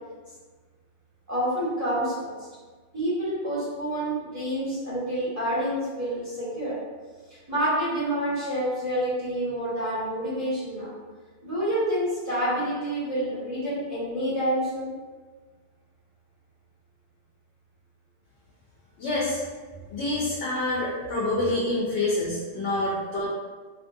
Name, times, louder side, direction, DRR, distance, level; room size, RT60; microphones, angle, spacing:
voice 1, 1.3-2.3 2.9-6.8 7.5-10.9 11.4-14.9, right 1 dB, 15° right, -13 dB, 1.3 m, -28 dB
voice 2, 19.0-19.4 19.9-23.3, left 2 dB, 80° left, -7 dB, 0.9 m, -27 dB
2.8 x 2.4 x 2.5 m, 1.4 s
omnidirectional pair, 1.1 m